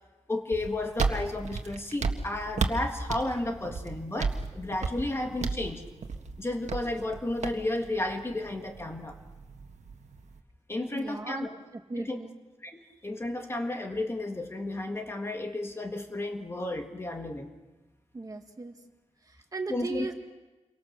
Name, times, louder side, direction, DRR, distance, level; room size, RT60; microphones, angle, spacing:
voice 1, 0.3-5.8 6.4-9.2 10.7-11.5 12.0-12.2 12.6-17.5 19.7-20.1, left 2 dB, 20° left, 4 dB, 1.8 m, -33 dB
sound 1, 0.5-10.4, right 4 dB, 85° right, 1.6 m, -34 dB
voice 2, 10.8-11.6 11.9-12.4 18.1-18.7 19.3-20.1, right 3 dB, 30° right, 4 dB, 2.1 m, -37 dB
29.0 x 24.0 x 6.8 m, 1.2 s
wide cardioid pair, 165°, 12 cm